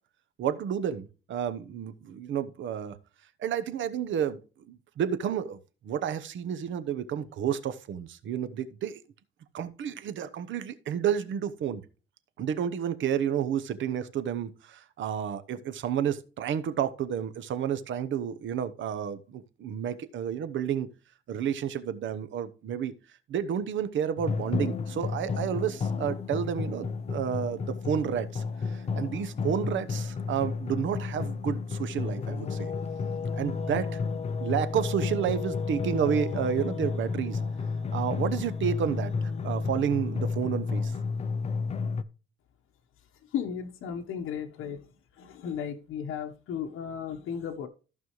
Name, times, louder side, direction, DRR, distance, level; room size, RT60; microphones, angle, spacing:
voice 1, 0.4-3.0 3.4-4.4 4.7-5.6 5.8-9.0 9.5-11.8 12.4-20.9 21.3-22.9 23.3-33.0 33.3-34.0 34.4-37.5 37.9-40.9, right 8 dB, 65° right, 0.9 m, -31 dB
sound 1, 24.2-42.0, left 5 dB, 30° left, 0.6 m, -32 dB
voice 2, 43.3-44.9 45.1-47.7, left 8 dB, 75° left, 1.2 m, -35 dB
14.5 x 5.5 x 3.1 m
cardioid pair, 145°, 21 cm